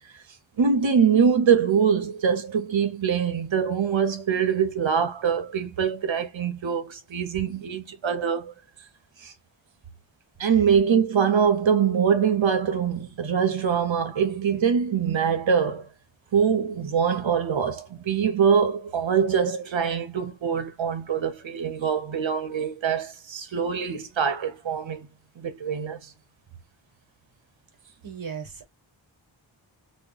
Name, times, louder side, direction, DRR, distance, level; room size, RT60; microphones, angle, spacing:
voice 1, 0.6-8.5 9.2-9.3 10.4-15.9 16.3-25.1 25.4-26.1, right 7 dB, 70° right, 0.7 m, -23 dB
voice 2, 28.0-28.7, right 6 dB, 45° right, 1.0 m, -36 dB
2.1 x 2.1 x 3.8 m
wide cardioid pair, 60°, 48 cm